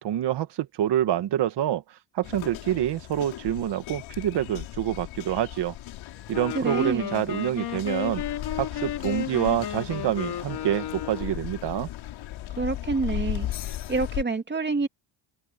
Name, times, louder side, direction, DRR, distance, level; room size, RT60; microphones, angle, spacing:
voice 1, 0.0-1.8 2.1-5.7 6.3-8.2 8.5-11.9, right 11 dB, 60° right, 1.8 m, -27 dB
sound 1, 2.2-14.2, left 14 dB, 75° left, 4.2 m, -37 dB
Wind instrument woodwind instrument, 6.2-11.5, left 10 dB, 55° left, 4.0 m, -33 dB
voice 2, 6.5-7.2 12.6-13.5 13.9-14.9, right 3 dB, 20° right, 2.7 m, -27 dB
open air
cardioid pair, 115°, 47 cm